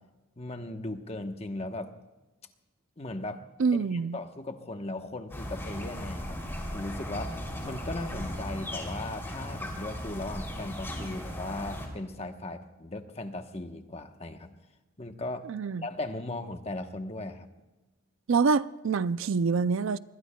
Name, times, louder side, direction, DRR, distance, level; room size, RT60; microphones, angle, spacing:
voice 1, 0.4-1.9 3.0-3.4 3.8-6.4 6.7-7.4 7.6-14.6 15.0-15.5 15.8-17.5, left 2 dB, 30° left, 1.1 m, -37 dB
voice 2, 3.6-4.2 15.4-15.9 18.3-20.0, right 5 dB, 70° right, 0.4 m, -26 dB
sound 1, 5.3-11.9, equal, 10° left, 3.0 m, -37 dB
25.5 x 21.0 x 2.3 m
head